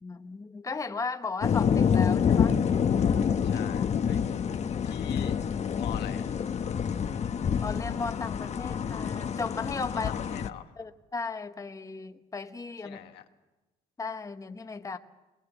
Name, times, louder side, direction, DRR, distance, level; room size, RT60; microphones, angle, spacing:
voice 1, 0.0-2.6 7.6-10.1 10.8-13.0 14.0-15.0, left 4 dB, 20° left, 8 dB, 1.0 m, -36 dB
sound 1, 1.4-10.5, left 7 dB, 40° left, 0.9 m, -27 dB
voice 2, 3.4-4.2 4.8-5.4 5.8-6.2 10.1-10.7 12.8-13.2, left 11 dB, 80° left, 6 dB, 1.4 m, -43 dB
21.5 x 19.5 x 7.1 m, 1.1 s
cardioid pair, 95°, 17 cm